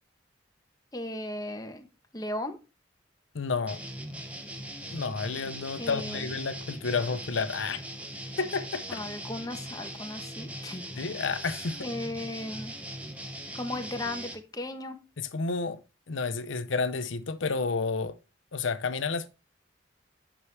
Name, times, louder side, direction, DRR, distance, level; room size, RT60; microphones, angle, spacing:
voice 1, 0.9-1.9 2.1-2.6 5.8-6.3 8.9-10.8 11.8-12.7 13.5-15.0, left 1 dB, 20° left, 1.0 m, -36 dB
voice 2, 3.3-3.8 4.9-7.8 8.4-9.0 11.0-11.9 15.2-15.8 16.1-18.2 18.5-19.3, left 4 dB, 90° left, 0.7 m, -30 dB
sound 1, 3.7-14.3, right 1 dB, 5° right, 1.0 m, -40 dB
9.8 x 6.0 x 3.3 m
head